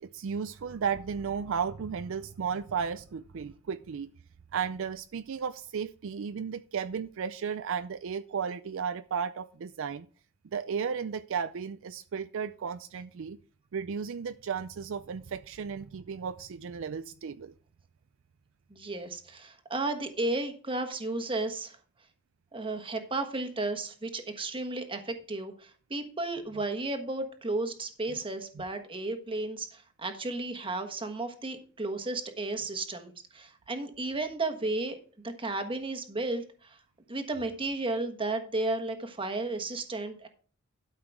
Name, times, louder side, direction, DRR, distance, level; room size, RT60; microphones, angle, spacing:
voice 1, 0.0-4.1 4.5-10.1 10.5-13.4 13.7-17.5 28.6-28.7, right 6 dB, 65° right, 13 dB, 0.4 m, -34 dB
voice 2, 18.7-21.8 22.5-35.0 35.2-36.8 37.1-40.3, right 2 dB, 25° right, 7 dB, 1.3 m, -33 dB
12.5 x 5.8 x 4.7 m, 0.41 s
head